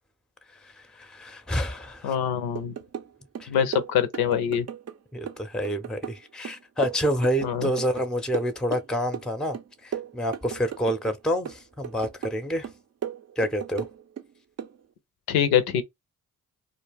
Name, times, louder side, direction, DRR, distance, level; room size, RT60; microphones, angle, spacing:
voice 1, 0.5-2.2 3.4-3.5 5.1-12.7 13.4-13.9, equal, ahead, 0.5 m, -28 dB
voice 2, 2.0-2.7 3.5-4.7 7.4-7.7 15.3-15.8, left 8 dB, 85° left, 0.6 m, -24 dB
sound 1, 2.6-3.1 3.4-5.0 5.3-8.1 8.3-9.3 9.5-11.2 11.5-12.4 12.6-14.3 14.6-14.8, right 8 dB, 45° right, 0.5 m, -36 dB
2.3 x 2.1 x 3.3 m
supercardioid pair, 40°, 36 cm